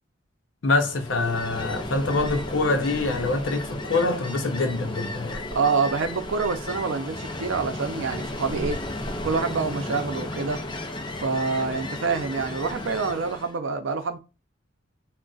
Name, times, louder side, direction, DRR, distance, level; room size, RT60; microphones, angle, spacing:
voice 1, 0.6-5.5, left 3 dB, 70° left, 0.7 m, -25 dB
Ocean, 0.8-13.6, left 1 dB, 25° left, 0.5 m, -34 dB
voice 2, 5.5-8.8 9.2-10.6 11.2-14.2, right 4 dB, 85° right, 0.6 m, -26 dB
3.9 x 2.2 x 2.3 m
head